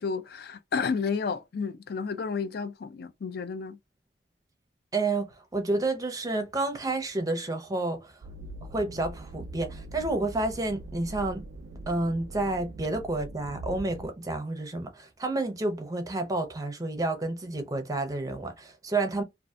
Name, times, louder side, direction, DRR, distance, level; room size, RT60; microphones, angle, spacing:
voice 1, 0.0-3.8, left 5 dB, 60° left, 0.4 m, -31 dB
voice 2, 4.9-5.3 5.5-8.2 8.7-11.4 11.9-19.2, right 2 dB, 20° right, 0.5 m, -30 dB
sound 1, 8.2-14.1, right 2 dB, 90° right, 0.4 m, -42 dB
2.6 x 2.4 x 2.3 m
head